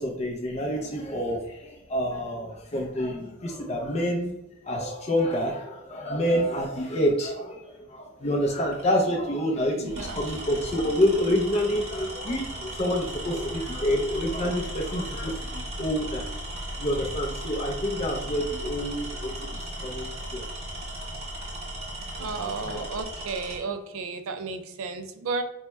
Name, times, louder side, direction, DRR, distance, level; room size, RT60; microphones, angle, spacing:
voice 1, 0.0-4.3 4.6-16.3 16.8-19.3 19.8-20.5 22.2-22.9, equal, 30° left, 0 dB, 0.4 m, -28 dB
Tools, 8.7-9.0 9.8-23.7, right 1 dB, 30° right, 0.8 m, -36 dB
voice 2, 9.8-10.2 22.2-25.4, right 4 dB, 75° right, 8 dB, 0.4 m, -33 dB
4.4 x 2.1 x 3.0 m, 0.90 s
head